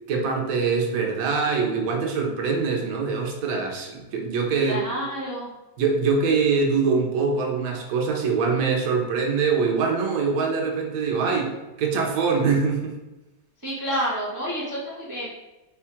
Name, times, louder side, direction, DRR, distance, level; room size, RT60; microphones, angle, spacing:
voice 1, 0.1-4.8 5.8-12.9, right 5 dB, 60° right, 1 dB, 1.1 m, -23 dB
voice 2, 4.6-5.5 13.6-15.3, equal, 30° right, -5 dB, 0.3 m, -29 dB
4.4 x 2.4 x 4.3 m, 1.0 s
omnidirectional pair, 2.0 m